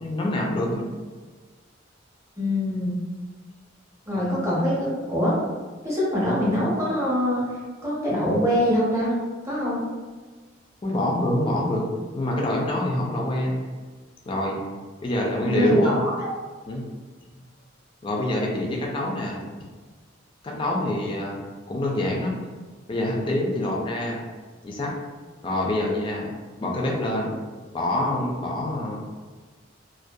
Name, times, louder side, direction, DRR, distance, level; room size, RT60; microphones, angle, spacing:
voice 1, 0.0-0.9 4.2-4.3 10.8-11.9 12.1-13.6 14.3-14.6 15.0-16.0 16.7-16.9 18.0-19.4 20.4-21.3 21.7-22.4 22.9-24.2 24.6-24.9 25.4-26.3 26.6-27.4 27.7-29.0, left 1 dB, 25° left, -2 dB, 0.3 m, -26 dB
voice 2, 2.4-3.0 4.1-5.4 5.8-7.5 7.8-9.2 9.4-9.8 15.4-16.3, equal, 15° right, -7 dB, 0.7 m, -23 dB
2.5 x 2.2 x 2.2 m, 1.4 s
head